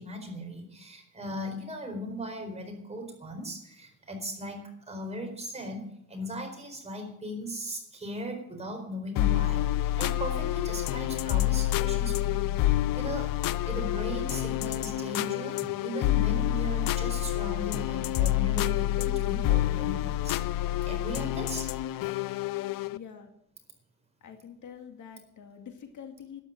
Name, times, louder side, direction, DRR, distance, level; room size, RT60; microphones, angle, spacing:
voice 1, 0.0-13.3 13.6-20.4 20.8-21.7, equal, 20° right, 3 dB, 4.3 m, -38 dB
sound 1, 9.2-23.0, left 14 dB, 90° left, 0.7 m, -28 dB
voice 2, 22.9-23.3 24.2-26.4, left 7 dB, 65° left, 5 dB, 2.3 m, -46 dB
12.5 x 10.5 x 8.9 m, 0.72 s
cardioid pair, 150°, 33 cm